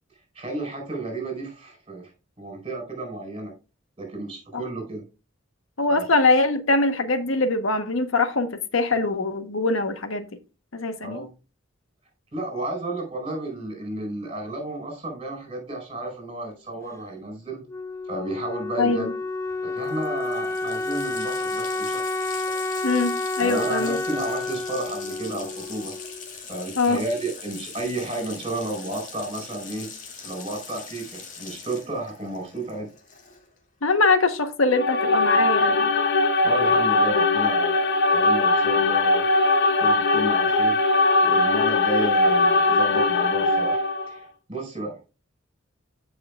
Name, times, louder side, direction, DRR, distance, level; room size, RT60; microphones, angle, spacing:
voice 1, 0.3-2.1 2.4-3.5 4.0-5.0 5.9-6.0 11.0-11.3 12.3-17.6 18.1-19.1 19.6-22.0 23.4-25.9 26.5-29.9 30.2-32.9 36.4-39.3 39.8-40.8 41.2-45.0, right 2 dB, 30° right, 4.7 m, -32 dB
voice 2, 5.8-10.3 10.7-11.3 18.8-19.1 22.8-24.0 26.8-27.0 33.8-35.9, left 3 dB, 85° left, 1.1 m, -23 dB
Wind instrument woodwind instrument, 17.7-26.4, left 2 dB, 15° left, 0.4 m, -30 dB
Water tap faucet, 19.5-19.6 19.8-33.6, left 5 dB, 40° left, 2.3 m, -41 dB
sound 1, 34.7-44.1, left 2 dB, 55° left, 0.7 m, -20 dB
15.5 x 5.7 x 2.4 m
head